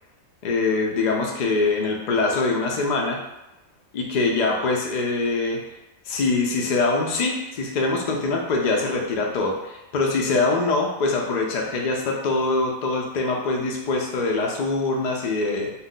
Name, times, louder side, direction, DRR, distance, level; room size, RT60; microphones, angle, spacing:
voice 1, 0.4-3.2 3.9-5.6 6.1-15.7, left 3 dB, 80° left, 0 dB, 0.4 m, -23 dB
2.7 x 2.1 x 3.7 m, 0.94 s
omnidirectional pair, 1.4 m